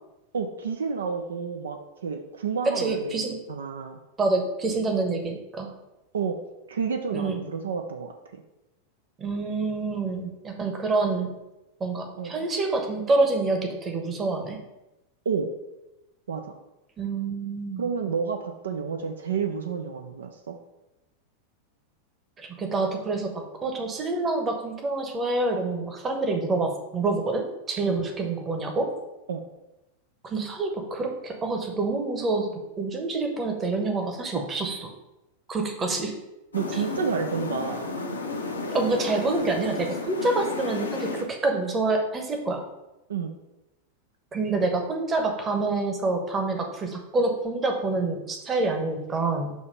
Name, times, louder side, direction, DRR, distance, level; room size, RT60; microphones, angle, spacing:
voice 1, 0.3-4.0 6.1-6.4 6.7-8.4 12.2-12.5 15.3-15.5 16.3-16.4 17.8-20.6 27.9-28.0 29.3-29.4 36.5-37.8 43.1-43.3, right 6 dB, 65° right, 5 dB, 0.5 m, -30 dB
voice 2, 2.7-3.4 4.2-5.7 7.1-7.4 9.2-11.3 11.8-14.6 17.0-17.9 22.4-28.9 30.2-34.9 35.5-36.1 36.7-36.8 38.7-42.6 44.3-49.5, right 3 dB, 20° right, 3 dB, 1.0 m, -27 dB
sound 1, 36.5-41.2, left 3 dB, 75° left, 0.8 m, -32 dB
6.2 x 2.9 x 5.2 m, 0.97 s
figure-of-eight pair, 90°, 0 cm